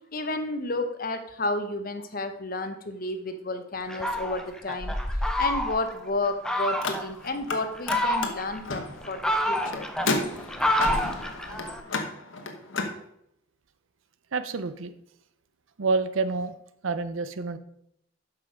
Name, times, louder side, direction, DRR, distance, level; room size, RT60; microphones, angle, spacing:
voice 1, 0.1-4.9 5.4-9.9, left 2 dB, 45° left, 7 dB, 0.9 m, -31 dB
Fowl, 3.9-6.0 6.4-7.1 7.6-8.6 9.0-11.8, left 1 dB, 5° left, 0.5 m, -28 dB
Car, 6.7-7.6 7.8-12.9, left 3 dB, 70° left, 1.1 m, -32 dB
voice 2, 14.3-14.9 15.8-16.6 16.8-17.6, right 4 dB, 75° right, 12 dB, 0.6 m, -28 dB
7.8 x 6.1 x 5.0 m, 0.75 s
head